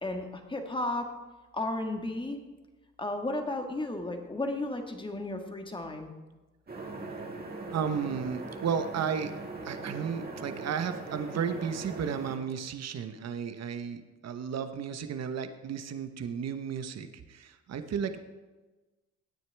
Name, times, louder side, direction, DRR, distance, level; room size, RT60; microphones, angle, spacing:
voice 1, 0.0-1.1 1.5-2.4 3.0-6.1, left 2 dB, 15° left, 4 dB, 1.6 m, -33 dB
sound 1, 6.7-12.4, right 3 dB, 30° right, 2.0 m, -40 dB
voice 2, 7.7-9.3 9.6-18.2, right 7 dB, 60° right, 9 dB, 1.0 m, -33 dB
17.0 x 9.4 x 3.5 m, 1.2 s
cardioid pair, 90°, 30 cm